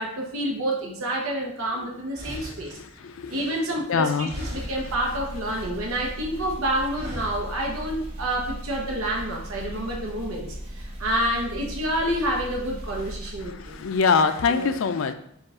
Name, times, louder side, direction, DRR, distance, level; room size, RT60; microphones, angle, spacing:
voice 1, 0.0-2.8 3.3-13.8 14.5-14.8, right 1 dB, 85° right, -1 dB, 0.8 m, -28 dB
sound 1, 1.6-1.7 2.1-4.0 4.3-5.0 5.3-6.2 6.9-7.6, equal, 45° right, 1.6 m, -39 dB
voice 2, 3.0-3.4 3.9-4.3 13.7-15.1, left 5 dB, 70° left, 10 dB, 0.4 m, -23 dB
sound 2, 4.4-14.2, equal, 25° right, 1.6 m, -38 dB
5.3 x 2.4 x 3.6 m, 0.70 s
head